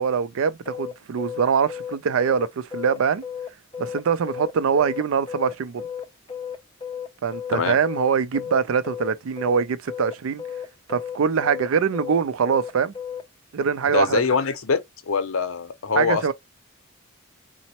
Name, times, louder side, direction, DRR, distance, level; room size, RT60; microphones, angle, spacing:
voice 1, 0.0-3.2 3.8-5.8 7.2-10.4 10.9-12.9 13.5-14.2 16.0-16.3, right 6 dB, 75° right, 0.4 m, -23 dB
sound 1, 0.6-13.2, left 7 dB, 25° left, 0.5 m, -34 dB
voice 2, 13.9-14.8 15.1-16.3, left 5 dB, 75° left, 0.6 m, -23 dB
4.0 x 2.0 x 2.8 m
head